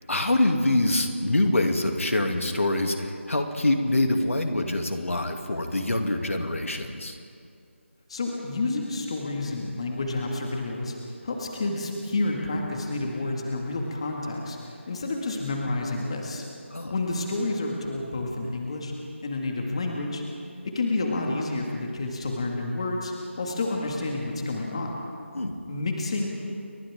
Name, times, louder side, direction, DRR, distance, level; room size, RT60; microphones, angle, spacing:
voice 1, 0.1-7.2 16.7-16.9 25.3-25.5, left 1 dB, 90° left, 4 dB, 2.6 m, -25 dB
voice 2, 8.1-10.9 11.2-16.4 16.9-18.9 19.2-20.2 20.6-24.9 25.7-26.3, left 2 dB, 25° left, 0 dB, 2.1 m, -29 dB
29.5 x 24.0 x 3.7 m, 2.4 s
figure-of-eight pair, 175°, 7 cm